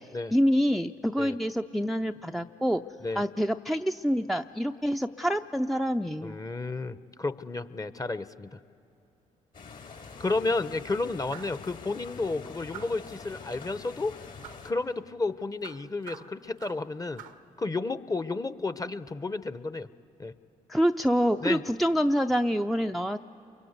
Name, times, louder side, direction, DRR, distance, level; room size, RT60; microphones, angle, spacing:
voice 1, 0.3-2.8 3.2-6.4 20.7-23.2, equal, ahead, 6 dB, 0.5 m, -26 dB
voice 2, 6.2-8.6 10.2-14.1 14.6-17.2 17.6-19.9 20.2-20.3 21.4-21.6, left 3 dB, 20° left, 14 dB, 0.9 m, -32 dB
sound 1, 9.5-14.7, left 5 dB, 60° left, 3.2 m, -45 dB
sound 2, 11.3-11.6 12.7-13.1 14.4-14.7 15.6-16.9 17.2-17.5, right 10 dB, 85° right, 0.9 m, -46 dB
28.0 x 23.5 x 8.2 m, 2.8 s
hypercardioid pair, 50°, 16 cm